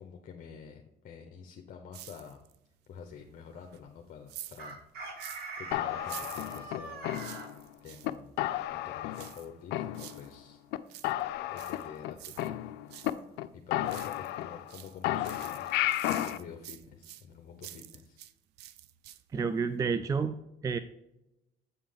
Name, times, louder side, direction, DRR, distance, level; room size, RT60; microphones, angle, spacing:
voice 1, 0.0-2.4 2.9-4.8 5.6-7.2 7.8-8.4 8.7-10.6 11.5-12.9 13.5-15.7 16.0-18.2, left 7 dB, 55° left, 4 dB, 0.8 m, -48 dB
sound 1, 1.9-2.7 3.0-5.6 6.0-8.1 9.1-10.3 10.7-13.2 13.5-14.4 14.7-18.3 18.6-19.4 19.7-19.8, right 13 dB, 80° right, 0.5 m, -49 dB
Chicken rooster, 4.6-7.5, right 2 dB, 65° right, 1.5 m, -42 dB
sound 2, 5.7-7.7 8.0-8.1 8.4-9.4 9.7-10.4 10.7-10.8 11.0-13.1 13.4-13.5 13.7-14.7 15.0-16.4, left 14 dB, 85° left, 0.5 m, -33 dB
voice 2, 19.3-20.4 20.6-20.8, right 5 dB, 20° right, 11 dB, 0.3 m, -29 dB
8.2 x 3.7 x 5.1 m, 0.86 s
cardioid pair, 110°, 17 cm